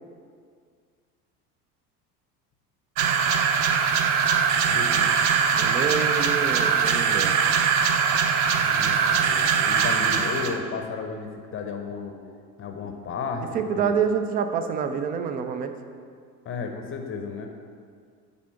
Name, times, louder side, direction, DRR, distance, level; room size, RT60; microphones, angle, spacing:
sound 1, 3.0-10.6, right 6 dB, 55° right, 0.7 m, -22 dB
voice 1, 4.7-5.1 8.6-12.2 12.6-14.0 16.4-17.5, left 4 dB, 25° left, 4 dB, 0.8 m, -33 dB
voice 2, 5.5-7.4 13.5-15.7, right 6 dB, 20° right, 8 dB, 0.4 m, -27 dB
9.2 x 4.0 x 5.7 m, 2.1 s
figure-of-eight pair, 70°, 48 cm